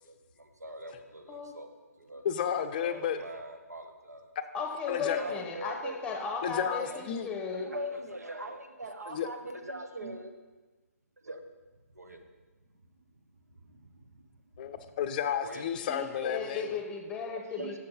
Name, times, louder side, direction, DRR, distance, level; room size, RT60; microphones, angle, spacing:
voice 1, 0.0-1.7 2.0-2.3 2.8-4.3 4.9-6.0 6.7-7.0 7.5-10.3 11.2-11.4 11.9-12.2 13.5-14.1 15.4-15.8 16.1-16.3 16.5-16.6 17.2-17.8, right 1 dB, 75° right, 5 dB, 1.1 m, -42 dB
voice 2, 2.2-3.2 4.9-5.2 6.4-7.3 9.1-9.3 14.6-16.8, left 8 dB, 30° left, 9 dB, 0.5 m, -32 dB
voice 3, 4.5-7.7 15.9-17.8, left 5 dB, 10° left, 3 dB, 0.9 m, -36 dB
7.1 x 6.8 x 5.4 m, 1.3 s
figure-of-eight pair, 130°, 9 cm